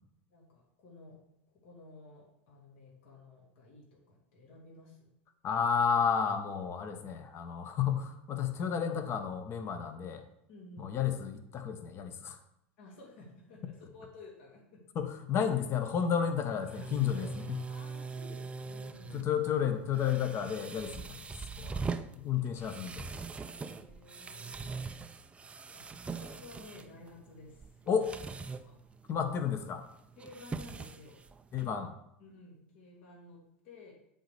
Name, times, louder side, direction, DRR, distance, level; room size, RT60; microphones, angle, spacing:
voice 1, 0.3-1.2 1.5-5.2 10.5-10.9 12.8-14.8 16.7-19.3 23.4-24.8 25.7-28.0 28.5-28.8 30.2-31.2 32.2-33.9, left 2 dB, 65° left, -3 dB, 2.9 m, -54 dB
voice 2, 5.4-10.2 10.8-12.4 14.9-17.6 19.1-21.2 21.6-23.0 27.9-28.1 29.1-29.8 31.5-31.9, left 7 dB, 40° left, 7 dB, 1.2 m, -32 dB
sound 1, 15.5-31.7, right 4 dB, 15° right, 0.5 m, -43 dB
7.8 x 4.1 x 6.8 m, 0.79 s
hypercardioid pair, 95°, 7 cm